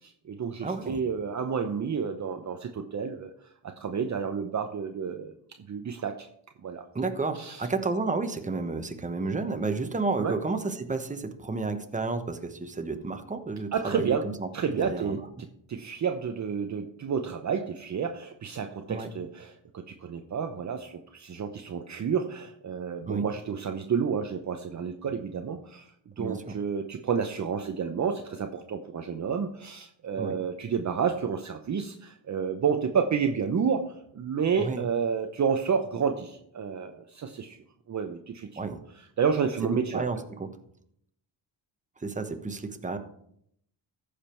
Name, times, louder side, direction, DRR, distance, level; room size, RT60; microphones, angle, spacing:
voice 1, 0.0-3.3 3.6-5.3 5.7-6.3 6.6-6.8 7.4-7.7 10.2-10.4 13.7-14.3 14.5-15.2 15.7-37.6 37.9-38.7 39.2-40.0, right 6 dB, 40° right, 5 dB, 0.8 m, -30 dB
voice 2, 0.6-1.0 6.9-15.2 18.9-19.1 23.0-23.3 26.2-26.6 30.2-30.4 34.6-34.8 38.6-38.8 39.6-40.5 42.0-43.0, right 3 dB, 15° right, 7 dB, 1.1 m, -31 dB
14.5 x 5.1 x 4.5 m, 0.72 s
cardioid pair, 90°, 45 cm